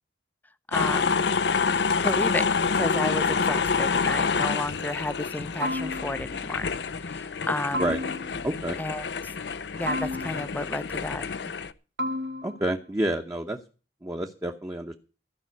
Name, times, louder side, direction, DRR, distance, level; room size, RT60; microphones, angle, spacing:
sound 1, 0.7-11.7, left 5 dB, 70° left, 0.6 m, -27 dB
voice 1, 0.7-1.3 2.0-2.5 2.7-6.7 7.0-7.8 8.8-9.3 9.8-11.3, left 1 dB, 10° left, 0.5 m, -32 dB
sound 2, 5.6-6.4 7.7-8.5 9.9-10.7 12.0-12.8, left 1 dB, 65° right, 0.9 m, -32 dB
voice 2, 8.4-8.8 12.4-13.6 14.0-14.9, right 1 dB, 15° right, 0.9 m, -29 dB
14.0 x 5.6 x 9.4 m
head